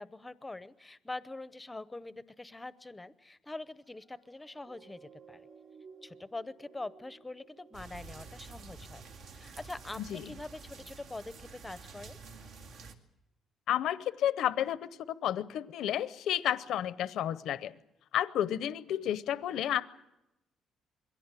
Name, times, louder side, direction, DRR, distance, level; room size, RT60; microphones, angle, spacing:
voice 1, 0.0-5.5 6.0-9.0 9.3-12.2, left 2 dB, 10° left, 15 dB, 0.7 m, -44 dB
sound 1, 3.7-10.4 11.0-11.2, right 5 dB, 40° right, 3.7 m, -58 dB
sound 2, 7.7-12.9, right 4 dB, 75° right, 2.1 m, -49 dB
voice 2, 10.0-10.3 13.7-14.9 15.2-17.7 18.1-19.8, left 11 dB, 70° left, 15 dB, 0.7 m, -31 dB
22.0 x 17.0 x 9.0 m, 0.92 s
cardioid pair, 140°, 0 cm